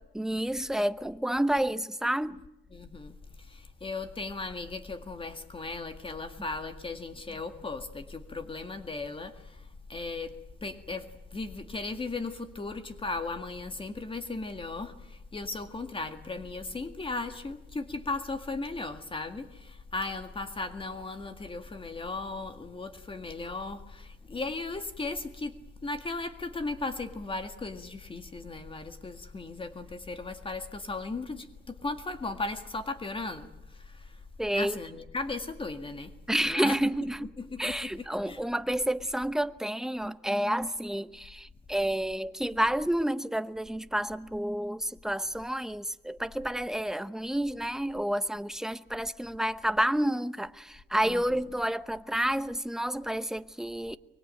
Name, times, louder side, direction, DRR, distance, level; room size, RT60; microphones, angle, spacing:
voice 1, 0.0-2.4 34.4-34.8 36.3-37.3 37.6-54.0, right 1 dB, ahead, 0.9 m, -30 dB
voice 2, 2.7-34.2 34.5-36.1 36.4-36.8 37.4-38.4 51.0-51.4, left 3 dB, 25° left, 1.9 m, -37 dB
24.0 x 21.0 x 9.0 m
cardioid pair, 90°, 20 cm